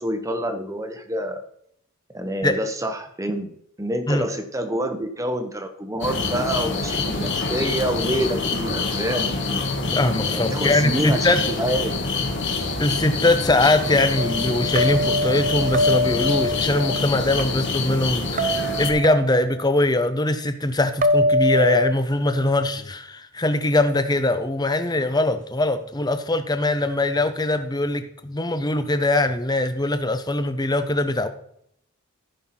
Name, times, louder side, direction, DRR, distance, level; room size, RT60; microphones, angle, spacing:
voice 1, 0.0-1.4 2.1-9.3 10.2-12.0, equal, 15° right, 7 dB, 1.0 m, -27 dB
sound 1, 6.0-18.9, left 3 dB, 55° left, 1.7 m, -26 dB
voice 2, 9.9-11.4 12.8-31.3, left 2 dB, 20° left, 10 dB, 0.7 m, -22 dB
sound 2, 14.2-17.4 18.4-19.6 21.0-21.9, left 1 dB, 35° right, 0.6 m, -23 dB
15.0 x 5.9 x 4.3 m, 0.71 s
head